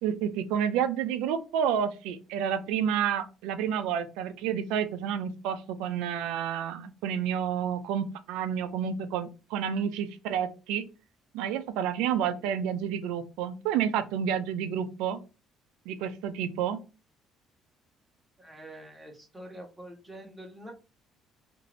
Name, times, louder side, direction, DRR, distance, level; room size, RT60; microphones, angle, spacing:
voice 1, 0.0-10.8 11.3-15.2 15.9-16.8, right 8 dB, 85° right, 11 dB, 0.4 m, -30 dB
voice 2, 18.4-20.7, right 1 dB, 10° right, 1 dB, 1.1 m, -46 dB
2.5 x 2.5 x 3.0 m, 0.31 s
cardioid pair, 95°, 0 cm